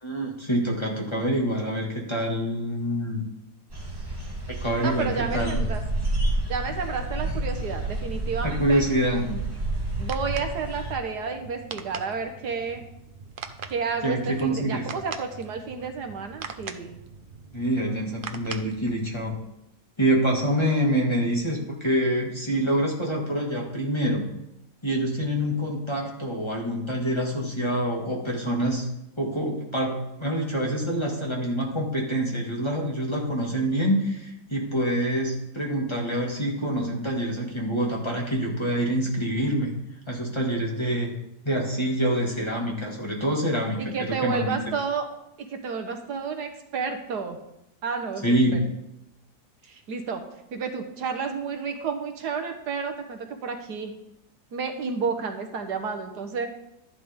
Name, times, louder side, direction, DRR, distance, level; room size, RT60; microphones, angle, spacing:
voice 1, 0.0-3.2 4.5-5.6 8.4-9.3 14.0-14.9 17.5-19.4 20.0-24.3 24.8-28.8 29.2-39.7 40.1-41.1 41.4-44.6 48.2-48.6, right 1 dB, 15° left, -2 dB, 2.0 m, -26 dB
sound 1, 3.7-10.9, right 2 dB, 15° right, 3.0 m, -30 dB
voice 2, 4.8-5.8 6.5-8.8 9.3-9.4 10.0-12.8 13.7-17.0 43.8-45.1 45.4-47.4 47.8-48.6 49.6-50.2 50.5-53.9 54.5-56.5, right 5 dB, 75° right, 5 dB, 1.7 m, -31 dB
sound 2, 9.7-19.4, right 5 dB, 55° right, 0.6 m, -42 dB
12.0 x 11.0 x 3.6 m, 0.84 s
omnidirectional pair, 1.8 m